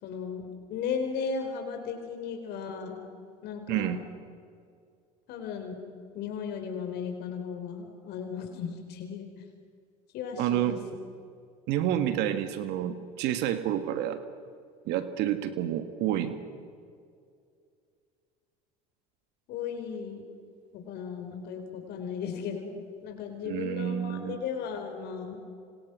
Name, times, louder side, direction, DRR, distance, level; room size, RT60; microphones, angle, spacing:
voice 1, 0.0-3.1 3.4-4.0 5.3-5.8 6.1-9.3 10.1-10.8 19.5-20.3 20.7-25.4, left 6 dB, 60° left, 5 dB, 4.4 m, -36 dB
voice 2, 3.7-4.0 10.4-10.8 11.7-14.2 14.9-16.4 23.4-24.4, right 11 dB, 65° right, 9 dB, 1.7 m, -29 dB
28.0 x 26.0 x 6.3 m, 2.3 s
hypercardioid pair, 80°, 19 cm